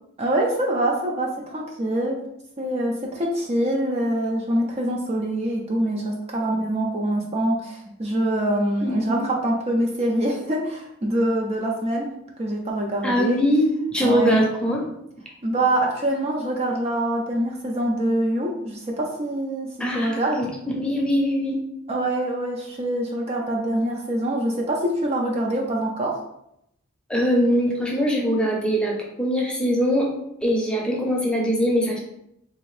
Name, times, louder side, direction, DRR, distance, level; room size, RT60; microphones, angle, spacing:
voice 1, 0.2-2.3 2.6-12.1 12.4-13.4 14.0-14.5 15.4-19.7 19.9-20.4 21.9-26.2, right 1 dB, 30° right, -1 dB, 0.4 m, -24 dB
voice 2, 8.8-9.3 13.0-14.8 19.8-21.6 27.1-30.1 30.4-32.0, equal, 5° left, -2 dB, 0.7 m, -22 dB
3.6 x 2.5 x 3.2 m, 0.78 s
head